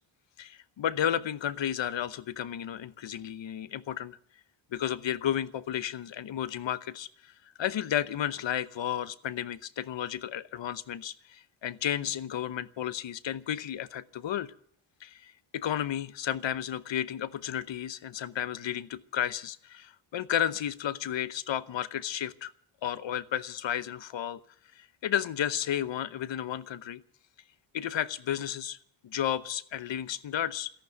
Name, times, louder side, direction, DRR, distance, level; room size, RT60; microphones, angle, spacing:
voice 1, 0.4-4.2 4.7-7.1 7.6-14.5 15.0-22.5 22.8-24.4 24.8-27.0 27.7-28.8 29.0-30.7, left 10 dB, 60° left, 16 dB, 0.9 m, -32 dB
13.5 x 11.5 x 9.1 m, 0.65 s
cardioid pair, 75°, 49 cm